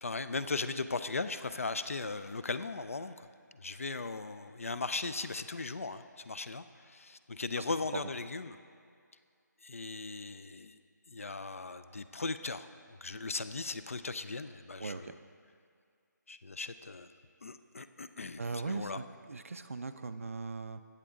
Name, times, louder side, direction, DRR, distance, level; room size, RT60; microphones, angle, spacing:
voice 1, 0.0-3.3 3.5-8.6 9.6-10.8 11.1-15.2 16.3-17.1 17.4-19.0, left 3 dB, 45° left, 11 dB, 0.4 m, -38 dB
voice 2, 14.8-15.1 18.4-20.8, right 4 dB, 45° right, 11 dB, 0.4 m, -39 dB
15.0 x 8.6 x 3.7 m, 2.3 s
figure-of-eight pair, 175°, 10 cm